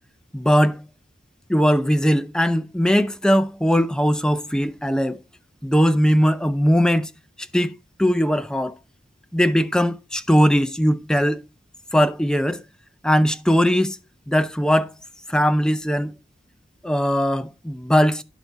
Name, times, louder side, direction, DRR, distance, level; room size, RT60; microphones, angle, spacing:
voice 1, 0.3-0.8 1.5-5.2 5.6-7.1 7.5-7.7 8.0-8.7 9.3-11.4 11.9-12.6 13.0-14.0 14.3-14.9 15.3-16.1 16.8-18.2, equal, 5° left, 0.4 m, -19 dB
11.5 x 4.1 x 4.6 m
head